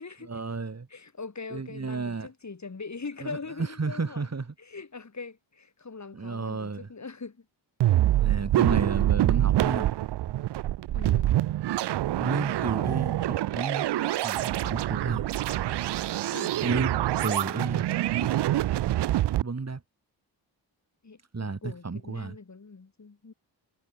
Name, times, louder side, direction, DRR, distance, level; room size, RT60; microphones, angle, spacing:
voice 1, 0.3-0.9 1.5-2.3 3.2-4.5 6.1-6.9 8.2-9.9 12.2-13.9 14.2-15.3 16.6-17.9 18.2-18.3 19.4-19.8 21.3-22.4, right 4 dB, 35° right, 3.4 m, -32 dB
voice 2, 0.9-4.3 4.6-7.4 7.9-8.0 10.9-11.4 16.3-16.6 21.0-23.3, left 4 dB, 40° left, 4.7 m, -41 dB
sound 1, 7.8-19.4, right 14 dB, 70° right, 0.5 m, -26 dB
cardioid pair, 65°, 43 cm